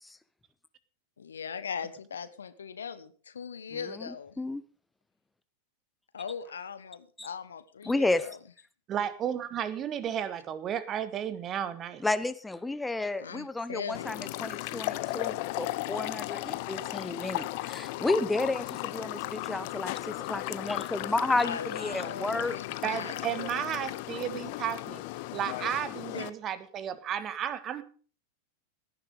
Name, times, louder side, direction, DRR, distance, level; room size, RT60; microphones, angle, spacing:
voice 1, 1.2-4.3 6.1-8.4 13.2-14.3 21.4-23.3 26.1-26.2, left 6 dB, 70° left, 14 dB, 1.2 m, -39 dB
voice 2, 3.7-4.6 7.2-7.3 7.8-8.3 12.0-22.6, left 2 dB, 5° left, 14 dB, 0.9 m, -32 dB
voice 3, 8.9-12.0 22.8-25.0 25.3-27.8, right 9 dB, 30° right, 14 dB, 1.5 m, -33 dB
sound 1, 13.9-26.3, left 18 dB, 50° left, 0.8 m, -36 dB
17.5 x 10.5 x 5.3 m, 0.40 s
figure-of-eight pair, 90°, 0 cm